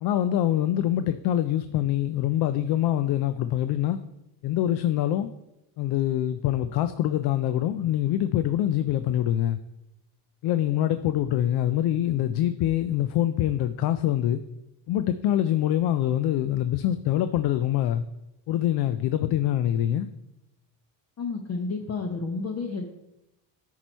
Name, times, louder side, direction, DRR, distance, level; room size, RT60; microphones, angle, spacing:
voice 1, 0.0-4.0 4.4-5.3 5.8-9.6 10.4-14.4 14.9-18.0 18.5-20.1, left 12 dB, 60° left, 10 dB, 0.5 m, -24 dB
voice 2, 21.2-22.8, left 4 dB, 35° left, 3 dB, 0.8 m, -31 dB
9.5 x 4.5 x 4.5 m, 0.90 s
cardioid pair, 115°, 44 cm